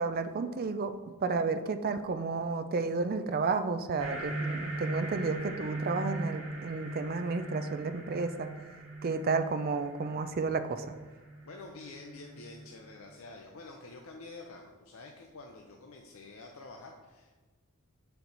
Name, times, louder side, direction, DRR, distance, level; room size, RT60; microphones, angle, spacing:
voice 1, 0.0-8.5 9.0-10.9, right 4 dB, 40° right, 9 dB, 0.4 m, -32 dB
sound 1, 4.0-12.9, right 1 dB, 75° right, 1.6 m, -39 dB
voice 2, 11.4-17.4, left 3 dB, 65° left, 2 dB, 0.6 m, -48 dB
6.9 x 4.6 x 3.9 m, 1.2 s
head